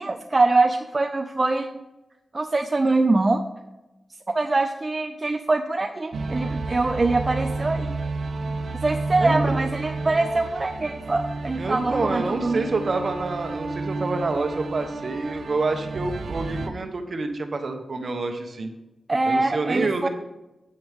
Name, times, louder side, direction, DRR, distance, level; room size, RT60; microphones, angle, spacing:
voice 1, 0.0-1.7 2.3-3.4 4.3-8.0 8.8-12.7 19.1-20.1, right 2 dB, 35° right, 5 dB, 0.5 m, -23 dB
sound 1, 6.1-16.7, right 3 dB, 75° right, 0.7 m, -30 dB
voice 2, 9.2-9.5 11.6-18.7 19.3-20.1, right 3 dB, 55° right, 6 dB, 1.1 m, -27 dB
9.2 x 7.9 x 3.6 m, 1.0 s
wide cardioid pair, 90°, 0 cm